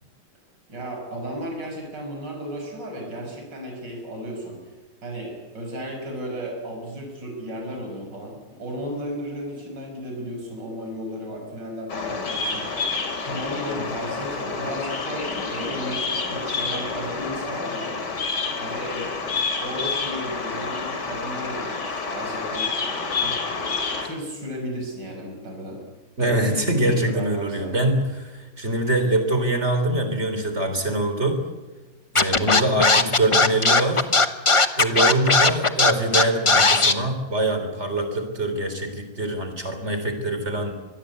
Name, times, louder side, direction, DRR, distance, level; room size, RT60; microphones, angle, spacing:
voice 1, 0.7-4.7 5.0-13.0 13.2-18.0 18.6-19.1 19.6-22.7 23.2-23.6 24.0-25.8 26.2-26.6 26.9-27.8, equal, 65° right, 2 dB, 6.5 m, -34 dB
Bird vocalization bird call bird song, 11.9-24.1, left 4 dB, 60° left, 3.5 m, -28 dB
voice 2, 26.2-31.4 32.1-34.1 34.8-40.7, right 1 dB, 35° right, 7 dB, 4.2 m, -24 dB
Scratching (performance technique), 32.1-36.9, left 3 dB, 25° left, 0.7 m, -17 dB
25.0 x 20.5 x 8.3 m, 1.2 s
omnidirectional pair, 2.1 m